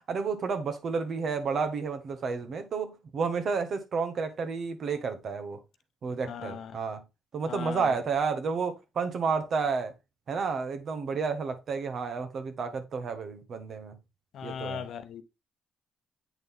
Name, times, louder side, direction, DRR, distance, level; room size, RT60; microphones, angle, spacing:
voice 1, 0.0-5.6 6.0-7.0 7.3-9.9 10.3-14.0 14.4-14.9, right 5 dB, 55° right, 1.3 m, -31 dB
voice 2, 6.3-6.7 7.5-7.8 14.3-15.2, left 7 dB, 70° left, 0.9 m, -38 dB
8.2 x 3.9 x 3.6 m
cardioid pair, 90°, 0 cm